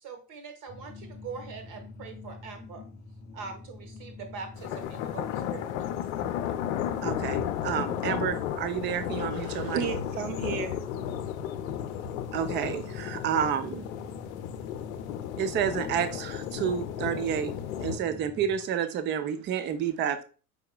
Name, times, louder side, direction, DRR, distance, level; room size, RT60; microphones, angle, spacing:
voice 1, 0.0-2.8 3.3-5.7, right 5 dB, 40° right, 1.3 m, -42 dB
sound 1, 0.7-18.6, left 3 dB, 25° left, 0.6 m, -45 dB
sound 2, 4.6-18.0, left 10 dB, 60° left, 0.6 m, -34 dB
voice 2, 7.0-9.8 12.3-13.8 15.4-17.5 17.8-20.2, right 8 dB, 25° right, 0.5 m, -30 dB
voice 3, 9.1-11.0 17.8-18.0 19.3-19.5 19.8-19.9, right 9 dB, 60° right, 0.9 m, -35 dB
4.9 x 4.6 x 2.2 m
hypercardioid pair, 90°, 46 cm